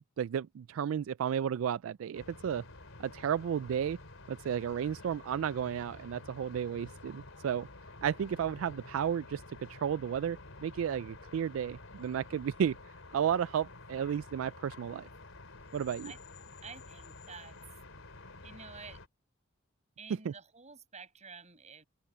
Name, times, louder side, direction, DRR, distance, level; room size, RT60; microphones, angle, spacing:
voice 1, 0.2-2.6 3.0-4.0 4.3-7.7 8.0-9.4 9.7-12.8 13.1-15.1 15.7-16.1 20.2-20.3, right 8 dB, 85° right, 0.3 m, -33 dB
sound 1, 2.1-19.1, left 2 dB, 90° left, 3.5 m, -50 dB
voice 2, 16.6-17.6 18.4-19.0 20.0-21.9, right 5 dB, 35° right, 6.2 m, -50 dB
open air
head